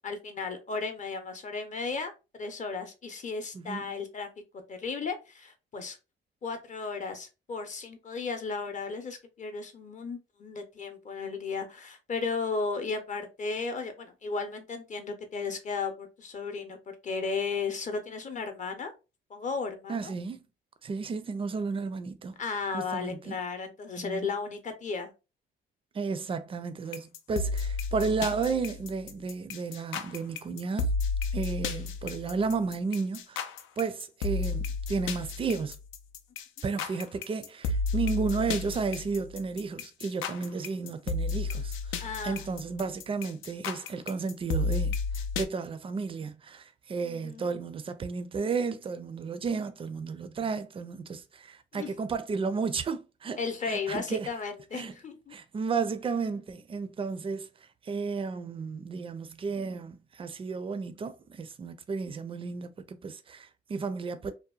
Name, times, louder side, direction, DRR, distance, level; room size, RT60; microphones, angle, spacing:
voice 1, 0.0-4.3 4.7-6.0 6.4-16.8 17.0-18.9 19.3-20.1 22.4-25.1 42.0-42.4 47.0-47.4 51.7-51.9 53.4-55.4, left 4 dB, 40° left, 0.6 m, -35 dB
voice 2, 19.9-20.4 20.8-22.4 22.7-23.4 24.0-24.3 25.9-30.9 31.3-33.5 33.8-35.8 36.6-53.4 53.7-54.3 54.7-54.9 55.3-57.5 57.8-64.3, right 4 dB, 25° right, 0.4 m, -33 dB
sound 1, 26.9-45.4, left 4 dB, 80° left, 0.4 m, -32 dB
2.7 x 2.1 x 2.3 m
cardioid pair, 90°, 20 cm